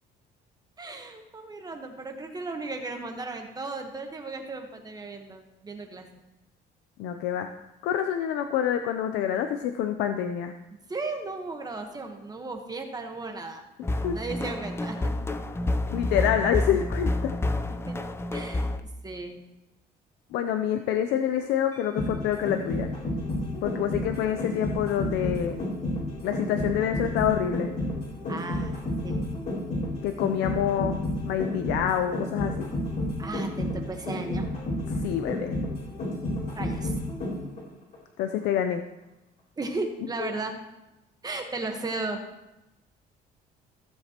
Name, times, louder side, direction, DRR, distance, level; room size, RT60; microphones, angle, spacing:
voice 1, 0.8-6.1 10.9-13.6 14.1-15.1 17.9-18.0 18.3-18.7 19.0-19.4 28.3-29.2 33.2-34.5 36.5-36.9 39.6-40.6 41.2-42.2, right 3 dB, 25° right, 4 dB, 1.2 m, -35 dB
voice 2, 7.0-7.5 7.8-10.5 13.9-14.2 15.9-17.3 20.3-22.9 23.6-25.6 26.2-27.7 30.0-32.7 34.9-35.5 38.2-38.8 40.2-40.3, left 9 dB, 85° left, 7 dB, 0.6 m, -27 dB
sound 1, 13.8-18.8, left 2 dB, 15° left, 0.5 m, -29 dB
sound 2, 21.7-37.6 37.9-38.0, left 1 dB, 50° left, 4.0 m, -30 dB
15.5 x 7.3 x 3.0 m, 0.99 s
cardioid pair, 110°, 17 cm